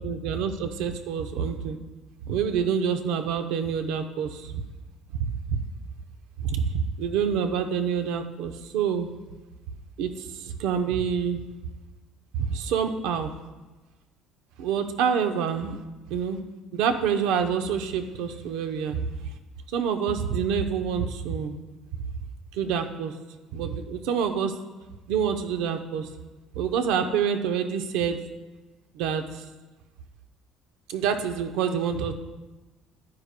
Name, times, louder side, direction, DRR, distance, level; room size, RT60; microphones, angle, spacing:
voice 1, 0.0-1.8 2.3-4.6 5.1-5.3 6.4-9.1 10.0-11.4 12.5-13.3 14.6-15.8 16.1-16.4 16.7-19.1 19.7-21.6 22.5-23.1 23.5-24.5 25.1-26.1 26.5-28.2 28.9-29.4 30.9-32.1, right 7 dB, 85° right, 7 dB, 0.7 m, -27 dB
11.0 x 9.6 x 2.2 m, 1.2 s
cardioid pair, 160°, 0 cm